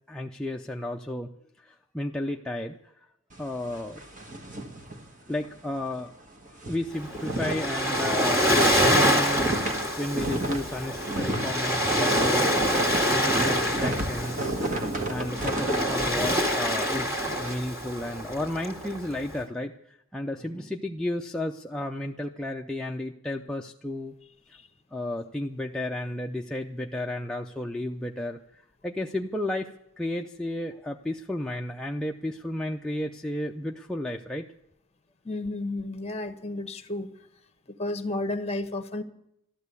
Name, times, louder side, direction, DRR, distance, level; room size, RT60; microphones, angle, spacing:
voice 1, 0.1-1.3 1.6-2.8 3.4-4.1 5.3-6.1 6.7-9.6 10.0-12.6 13.1-14.6 15.1-24.1 24.5-24.6 24.9-29.7 30.0-34.5, left 1 dB, 5° left, 0 dB, 0.5 m, -33 dB
sound 1, 3.3-5.6 5.9-6.0 6.4-17.5, right 1 dB, 35° right, 1.6 m, -33 dB
Waves surf, 7.0-19.4, equal, 15° right, 2.2 m, -26 dB
voice 2, 35.2-37.1 37.8-39.0, left 2 dB, 30° left, 10 dB, 1.1 m, -32 dB
13.0 x 12.5 x 8.3 m, 0.78 s
head